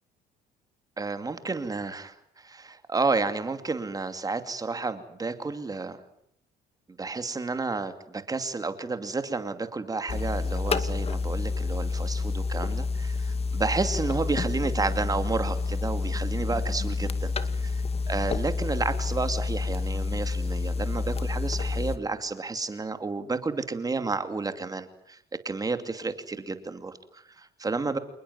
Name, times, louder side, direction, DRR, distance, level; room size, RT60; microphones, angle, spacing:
voice 1, 1.0-6.0 7.0-25.2 25.4-28.0, right 3 dB, 20° right, 9 dB, 2.7 m, -31 dB
sound 1, 10.1-22.0, left 4 dB, 35° left, 2.1 m, -29 dB
28.0 x 20.0 x 9.5 m, 0.71 s
cardioid pair, 110°, 17 cm